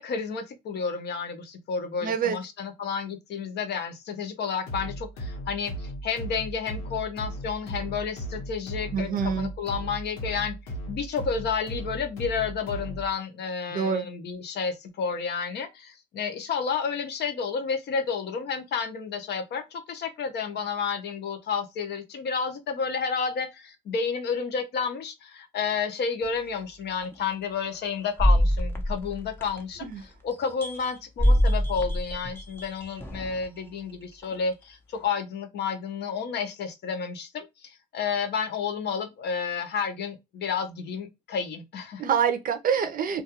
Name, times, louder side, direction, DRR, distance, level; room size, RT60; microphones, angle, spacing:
voice 1, 0.0-10.6 10.9-29.9 30.2-42.1, left 6 dB, 55° left, 0.6 m, -31 dB
voice 2, 2.0-2.4 8.9-9.5 13.7-14.1 29.8-30.0 42.0-43.2, right 7 dB, 40° right, 0.5 m, -26 dB
sound 1, 4.7-13.1, right 1 dB, 85° left, 1.0 m, -37 dB
sound 2, 26.2-26.3 27.0-27.2 28.2-29.9 30.3-33.5 34.2-34.4, equal, 10° left, 0.6 m, -25 dB
2.3 x 2.3 x 2.8 m
cardioid pair, 115°, 21 cm